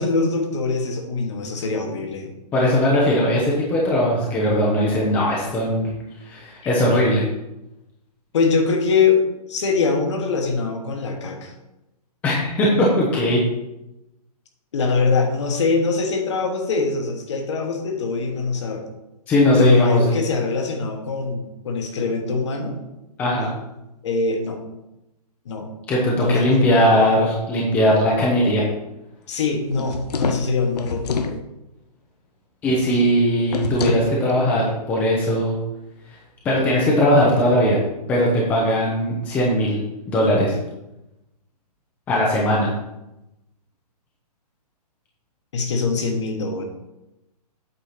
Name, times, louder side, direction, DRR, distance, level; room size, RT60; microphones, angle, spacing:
voice 1, 0.0-2.3 8.3-9.2 9.5-11.5 14.7-18.8 19.6-22.8 24.0-24.6 25.4-25.7 26.2-26.3 26.6-27.0 29.3-31.4 32.9-33.0 45.5-46.6, left 4 dB, 45° left, 3 dB, 1.5 m, -23 dB
voice 2, 2.5-5.9 6.2-7.2 12.2-13.4 19.3-20.2 23.2-23.5 25.9-28.6 32.6-35.6 36.4-37.8 38.1-39.8 40.1-40.6 42.1-42.7, equal, 10° left, -4 dB, 0.7 m, -19 dB
sound 1, 29.7-31.4 33.5-34.1, left 4 dB, 75° left, 0.9 m, -26 dB
8.4 x 4.4 x 5.7 m, 0.93 s
hypercardioid pair, 170°, 20 cm